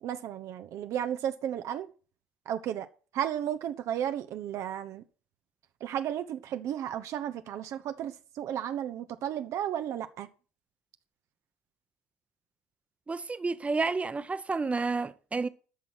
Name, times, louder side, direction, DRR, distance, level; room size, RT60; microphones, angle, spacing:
voice 1, 0.0-1.9 2.5-2.9 3.1-5.0 5.8-10.3, right 10 dB, 55° right, 0.8 m, -33 dB
voice 2, 13.1-15.5, right 4 dB, 20° right, 0.9 m, -30 dB
12.0 x 6.2 x 6.0 m
hypercardioid pair, 65°, 6 cm